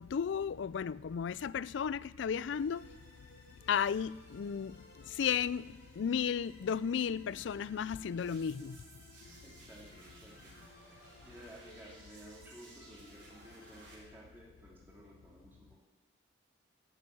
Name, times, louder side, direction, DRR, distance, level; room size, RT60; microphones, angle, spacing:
voice 1, 0.0-2.8 3.7-4.7 5.2-5.6 6.0-8.8, left 7 dB, 75° left, 0.3 m, -34 dB
sound 1, 2.5-14.1, left 1 dB, 60° left, 3.9 m, -59 dB
sound 2, 8.2-13.9, right 3 dB, 80° right, 4.3 m, -59 dB
voice 2, 9.2-15.8, right 1 dB, 10° right, 2.7 m, -55 dB
11.5 x 8.3 x 8.4 m
head